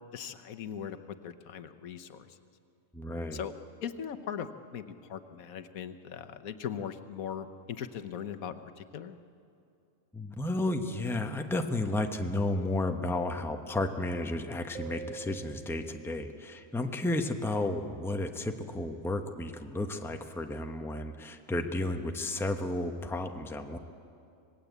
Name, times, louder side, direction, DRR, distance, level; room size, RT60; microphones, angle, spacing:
voice 1, 0.1-2.4 3.3-3.5 3.8-9.2, left 8 dB, 85° left, 10 dB, 1.4 m, -40 dB
voice 2, 2.9-3.4 10.1-23.8, left 2 dB, ahead, 5 dB, 0.9 m, -32 dB
sound 1, 14.7-17.0, right 7 dB, 60° right, 2.8 m, -46 dB
26.0 x 19.0 x 8.2 m, 2.5 s
omnidirectional pair, 1.4 m